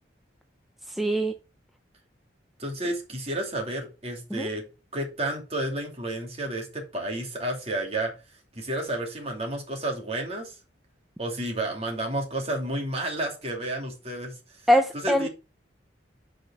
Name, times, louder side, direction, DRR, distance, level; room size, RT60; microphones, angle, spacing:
voice 1, 1.0-1.3 4.3-4.5 14.7-15.3, equal, ahead, 0.5 m, -22 dB
voice 2, 2.6-4.6 4.9-8.1 8.5-10.6 11.2-14.6 14.9-15.3, right 1 dB, 35° right, 2.6 m, -31 dB
7.6 x 5.1 x 5.5 m
head